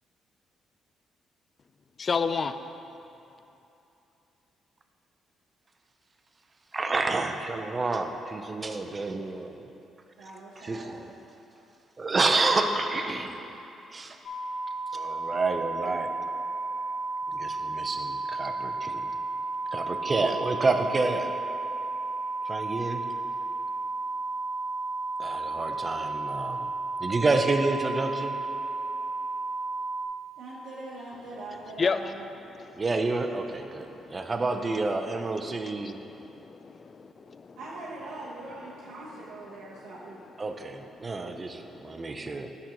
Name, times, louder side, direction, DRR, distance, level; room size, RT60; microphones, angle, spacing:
voice 1, 2.0-2.5 31.8-32.0 33.9-34.0 36.4-37.6, left 5 dB, 40° left, 10 dB, 0.3 m, -29 dB
voice 2, 6.7-9.7 10.6-11.1 12.0-13.6 13.9-14.2 14.9-16.1 17.3-19.2 19.7-21.3 22.4-23.0 25.2-26.7 27.0-28.4 32.7-36.0 40.4-42.5, right 3 dB, 30° right, 6 dB, 0.5 m, -29 dB
voice 3, 10.2-11.1 30.4-32.3 37.6-40.2, right 2 dB, 90° right, -6 dB, 0.8 m, -42 dB
sound 1, 14.2-30.0, right 3 dB, 65° left, 0.7 m, -33 dB
9.2 x 6.0 x 2.9 m, 2.9 s
cardioid pair, 90°, 0 cm